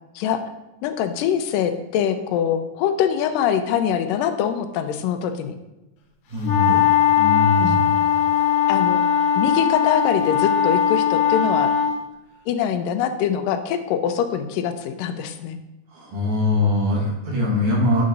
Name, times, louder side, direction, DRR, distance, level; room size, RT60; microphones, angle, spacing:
voice 1, 0.8-5.6 7.6-7.8 8.7-9.0 9.4-11.7 12.5-15.6, left 8 dB, 90° left, 8 dB, 2.3 m, -23 dB
voice 2, 6.3-6.8 7.1-8.0 15.9-18.0, left 2 dB, 70° right, -4 dB, 3.5 m, -22 dB
sound 1, 6.4-11.9, left 9 dB, 70° left, 2.2 m, -19 dB
8.8 x 3.8 x 5.3 m, 0.97 s
omnidirectional pair, 3.8 m